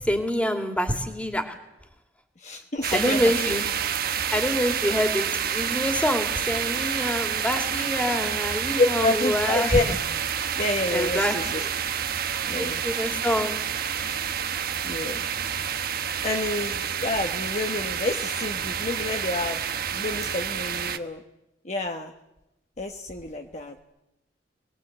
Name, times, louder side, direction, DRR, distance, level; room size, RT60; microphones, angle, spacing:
voice 1, 0.1-1.6 2.9-3.6 4.3-9.8 10.9-11.3 11.6-11.7 12.6-13.6, equal, 5° left, 5 dB, 2.6 m, -26 dB
voice 2, 2.4-3.6 8.8-10.0 10.5-11.6 12.5-12.8 14.8-15.3 16.2-19.6 19.9-21.2 21.6-22.1 22.8-23.8, left 2 dB, 40° left, 3 dB, 1.3 m, -28 dB
sound 1, 2.8-21.0, right 8 dB, 55° right, 1.1 m, -29 dB
25.5 x 20.5 x 8.1 m, 0.91 s
head